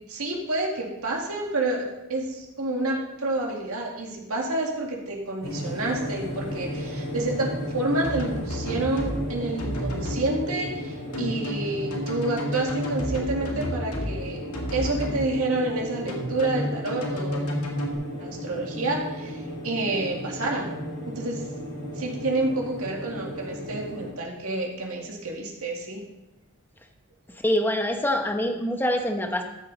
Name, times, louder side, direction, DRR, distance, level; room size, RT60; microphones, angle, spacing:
voice 1, 0.1-14.4 14.7-17.5 18.2-20.7 21.1-21.4 22.0-26.0, right 2 dB, 70° right, -1 dB, 2.1 m, -29 dB
sound 1, 5.4-24.1, equal, 45° left, 3.7 m, -35 dB
sound 2, 8.0-9.2 9.6-10.2 11.1-14.1 14.5-15.2 16.1-17.9, equal, 80° left, 2.0 m, -31 dB
voice 2, 27.4-29.4, left 1 dB, 10° left, 4 dB, 1.0 m, -25 dB
14.0 x 6.8 x 4.0 m, 0.94 s
head